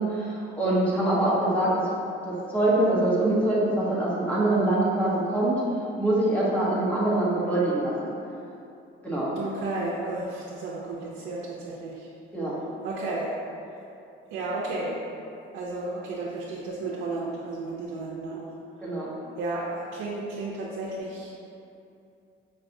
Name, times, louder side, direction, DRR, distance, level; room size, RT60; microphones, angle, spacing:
voice 1, 0.0-1.7 2.2-5.6 6.0-8.1 9.0-9.3 12.3-12.5 18.8-19.1, right 1 dB, 5° left, -8 dB, 0.9 m, -24 dB
voice 2, 9.3-12.1 12.8-13.4 14.3-15.0 15.4-18.5 18.8-18.9 19.4-21.3, right 2 dB, 85° right, -5 dB, 0.7 m, -33 dB
5.4 x 3.3 x 2.7 m, 2.7 s
cardioid pair, 120°, 20 cm